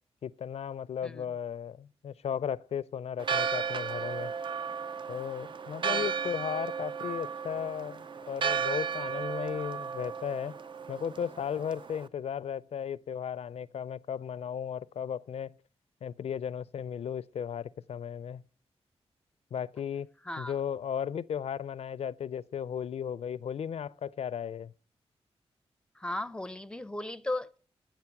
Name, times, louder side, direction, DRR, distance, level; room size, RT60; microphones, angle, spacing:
voice 1, 0.2-4.3 5.1-10.6 10.9-15.5 16.0-18.4 19.5-20.1 20.4-24.7, left 8 dB, 70° left, 0.4 m, -35 dB
Church bell, 3.2-12.1, right 6 dB, 50° right, 0.5 m, -34 dB
voice 2, 20.2-20.6 25.9-27.6, left 1 dB, 10° left, 0.5 m, -36 dB
9.7 x 7.3 x 5.9 m
cardioid pair, 75°, 11 cm